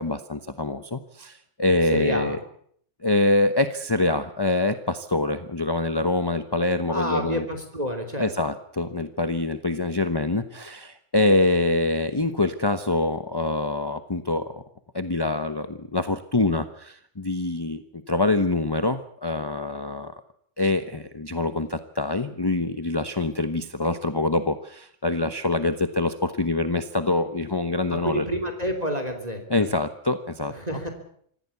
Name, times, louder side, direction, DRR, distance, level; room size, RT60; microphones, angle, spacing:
voice 1, 0.0-2.4 3.0-7.4 8.2-14.6 14.9-20.1 20.6-28.2 29.5-30.6, left 2 dB, 20° left, 10 dB, 1.0 m, -25 dB
voice 2, 1.7-2.4 6.9-8.3 27.9-29.7 30.5-30.9, equal, 35° right, 6 dB, 3.3 m, -29 dB
25.5 x 15.5 x 8.4 m, 0.64 s
omnidirectional pair, 1.2 m